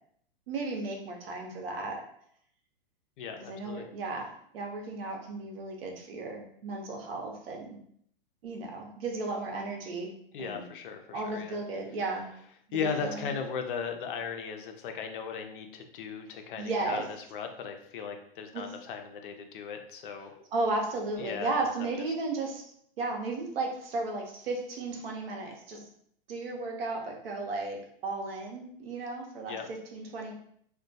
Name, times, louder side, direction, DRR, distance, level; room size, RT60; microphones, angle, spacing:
voice 1, 0.5-2.0 3.3-7.8 8.4-10.1 10.4-10.7 11.1-12.4 12.7-13.3 16.6-17.0 18.5-18.6 20.5-22.6 23.0-25.9 26.3-27.8 28.0-30.3, right 3 dB, 80° right, 1 dB, 0.8 m, -34 dB
voice 2, 3.2-3.9 10.3-11.6 12.7-17.0 17.3-20.3 21.2-21.7 29.5-29.6, left 6 dB, 60° left, 5 dB, 0.5 m, -37 dB
2.2 x 2.2 x 2.6 m, 0.66 s
hypercardioid pair, 155°, 29 cm